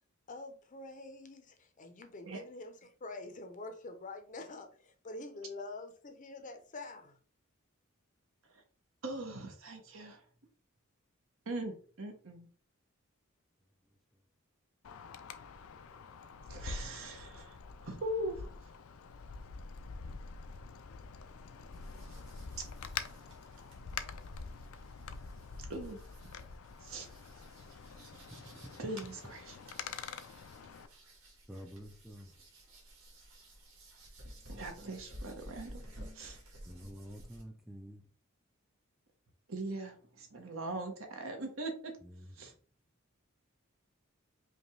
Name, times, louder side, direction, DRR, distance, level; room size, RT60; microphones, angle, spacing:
voice 1, 0.3-7.2, left 2 dB, 40° left, 0.6 m, -46 dB
voice 2, 9.0-10.2 11.5-12.5 16.5-18.5 22.6-22.7 25.7-26.1 26.8-27.1 28.8-29.6 34.5-35.9 36.1-36.4 39.5-41.9 42.4-42.5, right 2 dB, 65° right, 1.0 m, -41 dB
Wind, 14.8-30.9, left 5 dB, 80° left, 0.5 m, -46 dB
sound 1, 21.7-37.4, equal, 90° right, 1.6 m, -54 dB
voice 3, 28.1-28.7 31.5-32.3 36.7-38.0 42.0-42.3, equal, ahead, 0.4 m, -49 dB
5.2 x 2.3 x 3.1 m
head